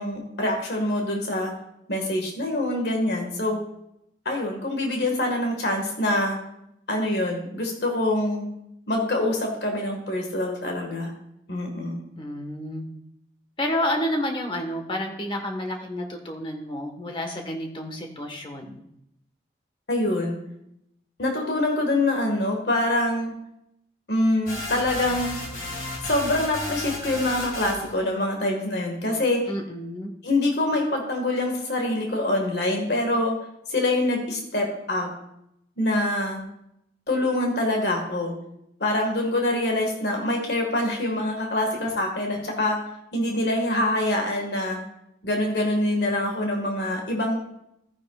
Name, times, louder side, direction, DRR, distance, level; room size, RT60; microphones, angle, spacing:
voice 1, 0.0-1.5 1.9-3.6 4.2-6.4 6.9-8.5 8.9-11.1 11.5-12.0 19.9-20.4 21.2-23.3 24.1-25.3 26.0-29.5 30.2-33.4 33.7-35.1 35.8-36.4 37.1-38.3 38.8-42.8 43.1-44.8 45.2-47.4, left 1 dB, 70° left, 1 dB, 1.7 m, -25 dB
voice 2, 12.2-12.9 13.6-18.8 29.5-30.1, left 1 dB, 30° left, 3 dB, 1.3 m, -30 dB
sound 1, 24.5-28.0, left 1 dB, 50° left, 2.3 m, -33 dB
14.0 x 9.6 x 2.4 m, 0.79 s
head